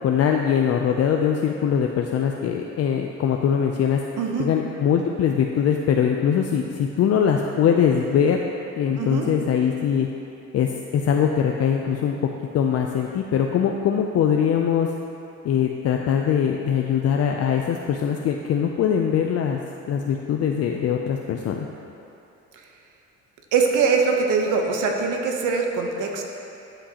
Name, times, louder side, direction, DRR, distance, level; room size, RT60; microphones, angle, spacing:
voice 1, 0.0-4.0 4.4-8.4 8.8-10.1 10.5-12.2 12.5-14.9 15.4-19.6 19.9-21.7, left 8 dB, 55° left, 2 dB, 0.5 m, -22 dB
voice 2, 4.2-4.5 9.0-9.3 23.5-26.2, right 5 dB, 80° right, 2 dB, 0.9 m, -22 dB
11.5 x 5.1 x 2.9 m, 2.8 s
cardioid pair, 90°, 30 cm